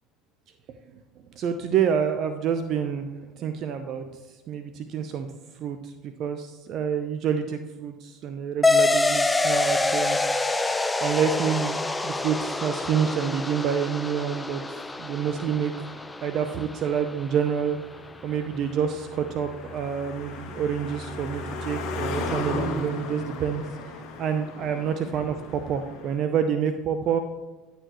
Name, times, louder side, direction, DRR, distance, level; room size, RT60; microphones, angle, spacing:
voice 1, 1.4-3.1 3.4-4.1 4.5-5.3 5.6-10.2 11.0-11.8 12.0-14.6 15.0-15.7 16.2-17.8 18.2-27.2, right 7 dB, 55° right, 8 dB, 0.6 m, -27 dB
sound 1, 8.6-17.7, left 3 dB, 15° left, 0.5 m, -26 dB
Car passing by, 15.0-26.2, left 3 dB, 60° left, 1.3 m, -36 dB
11.0 x 6.8 x 3.0 m, 1.2 s
supercardioid pair, 85°, 0 cm